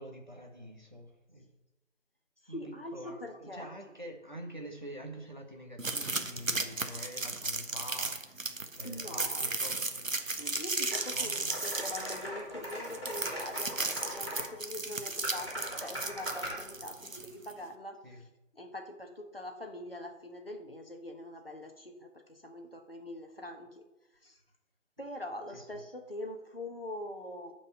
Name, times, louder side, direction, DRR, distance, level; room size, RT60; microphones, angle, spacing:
voice 1, 0.0-1.5 2.5-10.1 11.1-11.5 18.0-18.2 25.5-25.8, equal, 35° right, 2 dB, 1.6 m, -46 dB
voice 2, 2.4-3.7 8.8-9.5 10.4-18.2 18.5-23.8 24.2-24.4 25.0-27.5, left 1 dB, 45° left, 3 dB, 1.7 m, -43 dB
sound 1, 5.8-17.5, right 3 dB, 90° right, 1.4 m, -35 dB
sound 2, 10.9-11.0 11.5-14.5 15.2-16.6, equal, 20° left, 3.5 m, -40 dB
13.5 x 5.4 x 5.5 m, 0.97 s
figure-of-eight pair, 180°, 38 cm